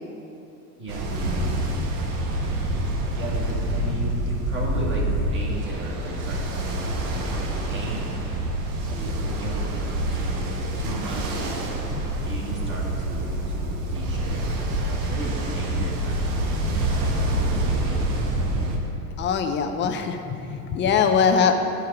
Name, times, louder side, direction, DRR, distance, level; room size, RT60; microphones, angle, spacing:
voice 1, 0.8-1.6 3.1-8.2 8.9-11.5 12.2-18.4, right 1 dB, 25° right, -3 dB, 1.7 m, -36 dB
Ocean, 0.9-18.8, right 1 dB, 75° right, 1.4 m, -26 dB
voice 2, 19.2-21.5, left 6 dB, 25° left, 6 dB, 0.5 m, -22 dB
9.9 x 4.9 x 4.7 m, 2.9 s
supercardioid pair, 120°, 46 cm